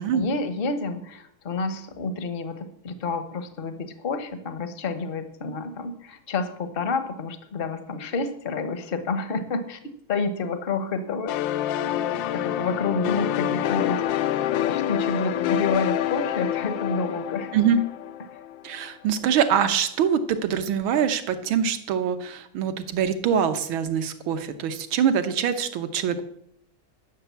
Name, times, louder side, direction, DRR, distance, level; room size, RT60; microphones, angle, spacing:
voice 1, 0.0-9.8 10.1-11.4 11.8-17.5, left 3 dB, 40° left, 10 dB, 0.9 m, -29 dB
sound 1, 11.3-18.8, left 11 dB, 75° left, 1.2 m, -27 dB
voice 2, 17.5-17.8 18.6-26.3, right 8 dB, 70° right, 10 dB, 1.7 m, -24 dB
12.0 x 6.7 x 8.2 m, 0.73 s
omnidirectional pair, 2.4 m